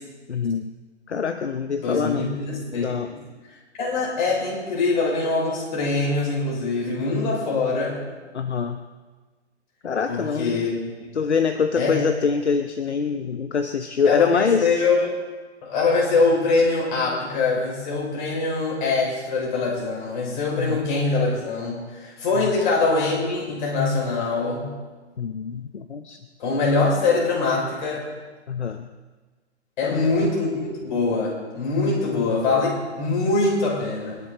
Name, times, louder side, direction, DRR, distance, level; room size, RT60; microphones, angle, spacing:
voice 1, 0.3-0.7 1.1-2.3 2.7-3.1 8.3-8.8 9.8-10.7 11.1-14.7 20.5-20.8 22.4-22.5 25.2-26.2 28.5-28.9 29.8-30.0, left 6 dB, 70° left, 9 dB, 1.0 m, -25 dB
voice 2, 1.8-3.2 3.8-8.0 10.1-10.7 11.8-12.1 14.0-15.1 15.6-24.7 26.4-28.0 29.8-34.2, left 3 dB, 40° left, -3 dB, 6.2 m, -23 dB
29.0 x 11.0 x 4.1 m, 1.3 s
figure-of-eight pair, 125°, 35 cm